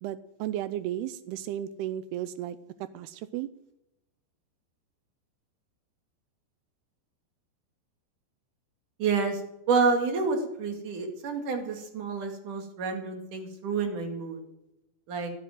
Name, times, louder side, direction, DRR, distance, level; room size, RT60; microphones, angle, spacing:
voice 1, 0.0-2.6 2.9-3.5, right 12 dB, 90° right, 14 dB, 2.2 m, -34 dB
voice 2, 9.0-9.4 9.7-14.4 15.1-15.3, right 4 dB, 50° right, 4 dB, 3.1 m, -28 dB
17.0 x 8.2 x 9.1 m, 0.88 s
omnidirectional pair, 5.4 m